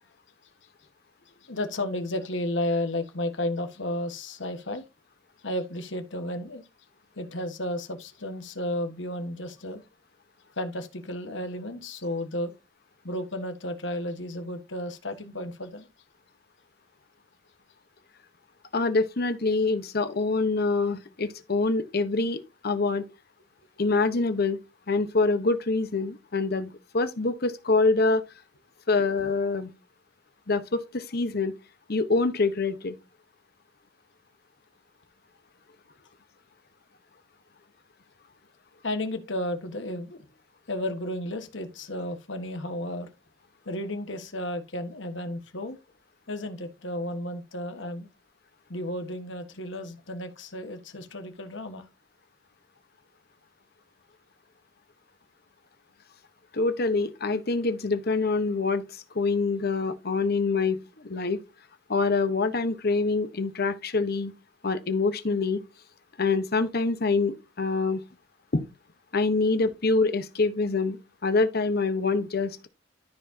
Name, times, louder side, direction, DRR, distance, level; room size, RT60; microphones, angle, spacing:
voice 1, 1.4-4.8 5.4-6.6 7.2-9.8 10.6-12.5 13.0-15.9 38.8-40.2 40.7-43.1 43.6-45.8 46.3-48.1 48.7-51.8, left 1 dB, 70° left, 1.4 m, -33 dB
voice 2, 18.7-23.1 23.8-24.6 24.9-28.2 28.9-29.7 30.5-31.5 31.9-33.0 56.5-61.4 61.9-64.3 64.6-65.6 66.2-68.0 68.5-68.7 69.1-72.7, left 3 dB, 55° left, 1.0 m, -25 dB
13.0 x 4.6 x 2.8 m
head